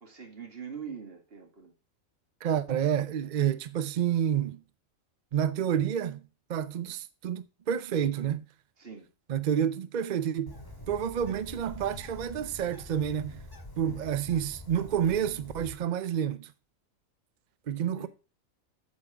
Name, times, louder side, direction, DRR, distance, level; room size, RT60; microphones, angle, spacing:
voice 1, 0.0-1.7 8.8-9.1 17.8-18.1, right 6 dB, 45° right, 2.1 m, -43 dB
voice 2, 2.4-4.6 5.3-6.2 6.5-8.5 9.3-10.6 10.9-13.4 13.8-16.5 17.7-18.1, right 9 dB, 60° right, 0.4 m, -29 dB
Bird, 10.5-15.8, left 1 dB, 15° left, 2.0 m, -46 dB
8.3 x 7.3 x 4.8 m
omnidirectional pair, 1.4 m